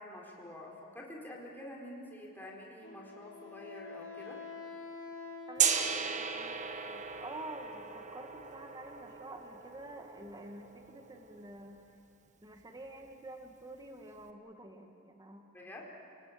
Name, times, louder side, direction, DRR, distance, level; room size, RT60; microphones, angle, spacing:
voice 1, 0.0-4.4 15.5-15.8, left 1 dB, 10° left, -3 dB, 4.3 m, -47 dB
Wind instrument woodwind instrument, 2.8-6.4, left 4 dB, 60° left, 3.9 m, -47 dB
voice 2, 5.5-11.8 12.4-15.5, right 1 dB, 20° right, 4 dB, 1.6 m, -48 dB
Gong, 5.6-11.5, right 7 dB, 35° right, 1.3 m, -36 dB
29.5 x 18.5 x 9.1 m, 2.7 s
head